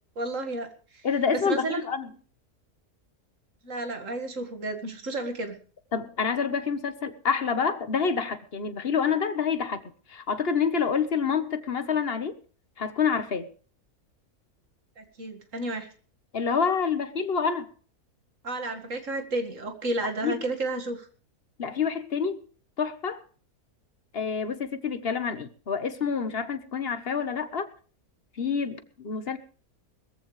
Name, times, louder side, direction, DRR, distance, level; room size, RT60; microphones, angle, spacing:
voice 1, 0.2-1.1 1.3-1.8 3.6-5.6 15.0-15.9 18.4-21.1, right 2 dB, 55° right, 7 dB, 2.3 m, -32 dB
voice 2, 1.0-2.1 5.9-9.8 10.1-12.4 12.8-13.5 16.3-17.7 20.2-20.4 21.6-22.4 22.8-23.2 24.1-27.7 28.4-29.4, left 6 dB, 45° left, 12 dB, 1.4 m, -27 dB
20.5 x 14.5 x 3.3 m, 0.41 s
omnidirectional pair, 1.6 m